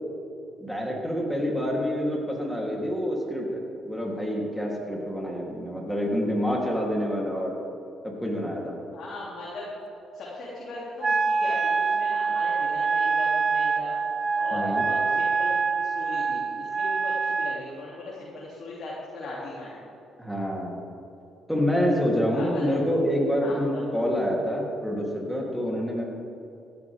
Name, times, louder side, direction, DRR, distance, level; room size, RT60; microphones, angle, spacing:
voice 1, 0.6-7.5 8.0-8.8 14.5-14.9 20.2-20.8 21.5-26.0, equal, ahead, -3 dB, 3.5 m, -27 dB
voice 2, 8.9-9.7 10.1-14.0 14.4-19.7 22.3-22.8 23.4-24.1, left 2 dB, 60° left, -7 dB, 3.3 m, -38 dB
Wind instrument woodwind instrument, 11.0-17.6, right 4 dB, 35° right, 0.6 m, -25 dB
15.5 x 11.5 x 3.7 m, 2.7 s
supercardioid pair, 70°, 0 cm